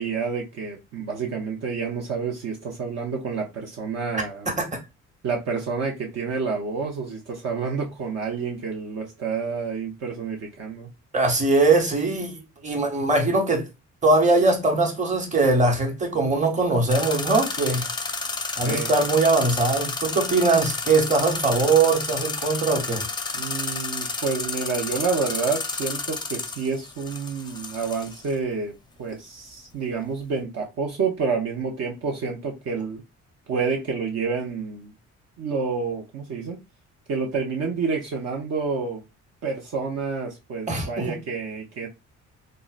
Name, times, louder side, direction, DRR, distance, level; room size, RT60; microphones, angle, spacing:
voice 1, 0.0-4.5 5.2-10.9 18.6-18.9 23.3-33.0 33.5-34.9 35.4-36.6 37.1-39.0 39.4-41.9, right 5 dB, 55° right, 0.7 m, -29 dB
voice 2, 11.1-13.6 14.0-17.9 18.6-23.0 40.7-41.2, right 3 dB, 25° right, 1.1 m, -21 dB
sound 1, 16.9-28.3, left 4 dB, 15° left, 0.5 m, -31 dB
3.6 x 2.1 x 2.5 m
cardioid pair, 95°, 30 cm